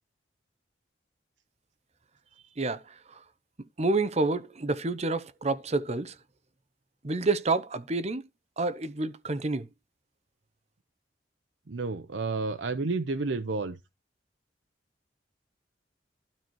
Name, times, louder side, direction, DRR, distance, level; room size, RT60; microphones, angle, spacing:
voice 1, 2.6-3.2 3.8-6.1 7.0-8.2 8.6-9.7, right 3 dB, 35° right, 0.8 m, -29 dB
voice 2, 11.7-13.8, right 3 dB, 80° right, 0.7 m, -30 dB
12.0 x 4.3 x 4.6 m
head